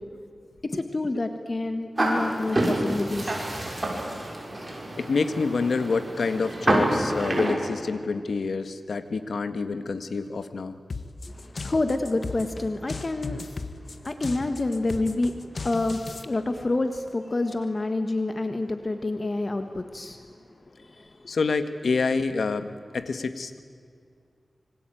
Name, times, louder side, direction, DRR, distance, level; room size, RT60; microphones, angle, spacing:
voice 1, 0.6-3.4 11.3-21.3, left 2 dB, 40° left, 7 dB, 1.6 m, -28 dB
sound 1, 2.0-7.5, right 1 dB, 30° right, 6.7 m, -27 dB
voice 2, 5.0-10.8 21.3-23.6, left 4 dB, 85° left, 10 dB, 1.7 m, -27 dB
sound 2, 10.9-16.2, left 3 dB, 60° left, 1.7 m, -36 dB
26.0 x 24.5 x 9.3 m, 2.2 s
wide cardioid pair, 95°, 0 cm